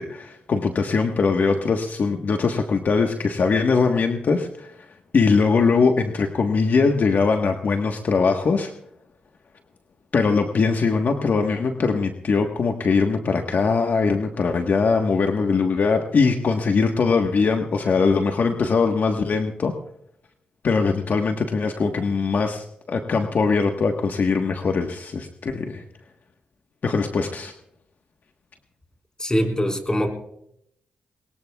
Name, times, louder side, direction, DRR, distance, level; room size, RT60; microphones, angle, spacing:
voice 1, 0.0-4.7 5.1-8.7 10.1-19.7 20.6-25.8 26.8-27.5, left 4 dB, 60° left, 4 dB, 1.3 m, -21 dB
voice 2, 29.2-30.1, equal, 20° left, 3 dB, 4.7 m, -22 dB
22.0 x 21.5 x 2.4 m, 0.73 s
supercardioid pair, 55°, 3 cm